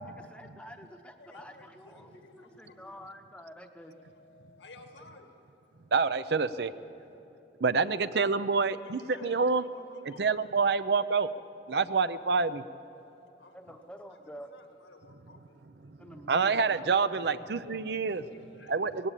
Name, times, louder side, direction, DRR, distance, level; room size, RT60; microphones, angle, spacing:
voice 1, 0.0-4.0 13.5-14.5 16.0-16.9, equal, 5° left, 5 dB, 0.8 m, -49 dB
voice 2, 1.2-3.0 3.9-5.3 5.6-5.9 8.5-9.3 9.6-10.2 13.4-13.6 14.2-15.5 17.2-17.3 18.1-18.7, left 3 dB, 85° left, 5 dB, 1.8 m, -55 dB
voice 3, 5.9-6.7 7.6-9.6 10.0-11.3 11.7-12.6 15.8-16.0 16.3-18.2 18.7-19.1, right 4 dB, 65° right, 14 dB, 0.6 m, -27 dB
19.0 x 16.5 x 8.4 m, 3.0 s
head